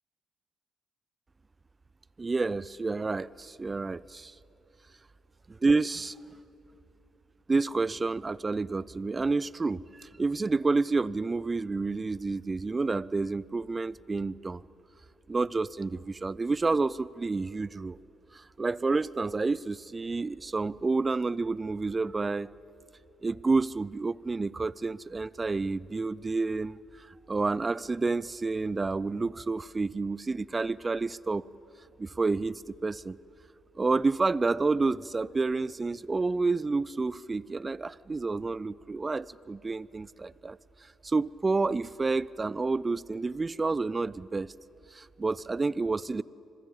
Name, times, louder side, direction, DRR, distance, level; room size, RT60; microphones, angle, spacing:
voice 1, 2.2-4.3 5.5-6.2 7.5-14.6 15.3-18.0 18.3-22.5 23.2-31.4 32.0-33.2 33.8-40.6 41.0-44.5 44.9-46.2, right 3 dB, 30° right, 22 dB, 0.5 m, -29 dB
26.0 x 20.0 x 8.5 m, 2.9 s
hypercardioid pair, 45°, 0 cm